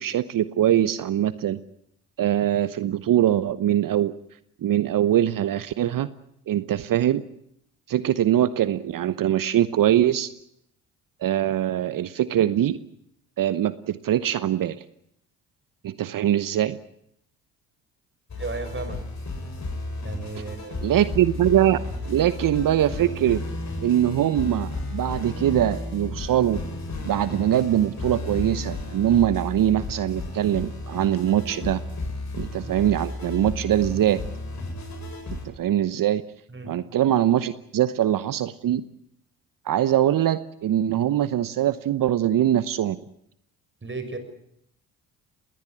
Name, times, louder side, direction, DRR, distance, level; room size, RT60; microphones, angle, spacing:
voice 1, 0.0-1.6 2.2-4.1 4.6-6.1 6.5-7.2 7.9-10.3 11.2-12.8 13.4-14.8 15.8-16.8 20.8-21.8 22.1-23.4 23.8-26.6 27.0-31.8 32.4-34.2 35.3-36.2 36.7-38.8 39.7-43.0, right 11 dB, 50° right, 15 dB, 1.0 m, -22 dB
sound 1, 18.3-35.5, left 2 dB, 40° left, 7.7 m, -33 dB
voice 2, 18.4-19.0 20.0-21.0 36.5-36.7 43.8-44.2, right 3 dB, 30° right, 9 dB, 6.1 m, -35 dB
21.0 x 18.0 x 9.8 m, 0.74 s
hypercardioid pair, 60°, 41 cm